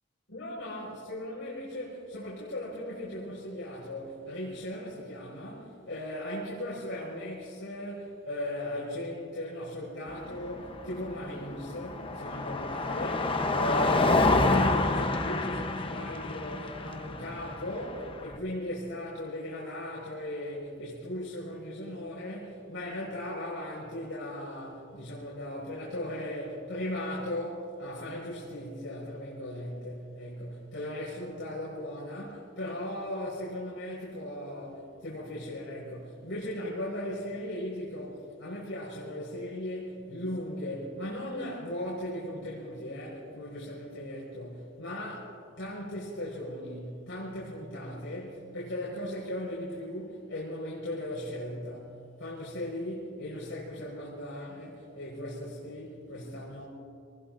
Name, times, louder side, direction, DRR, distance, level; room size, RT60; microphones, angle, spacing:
voice 1, 0.3-56.6, left 1 dB, 90° left, 5.0 m, -37 dB
Car passing by, 10.1-18.4, left 2 dB, 30° left, 0.9 m, -28 dB
28.0 x 20.0 x 2.6 m
head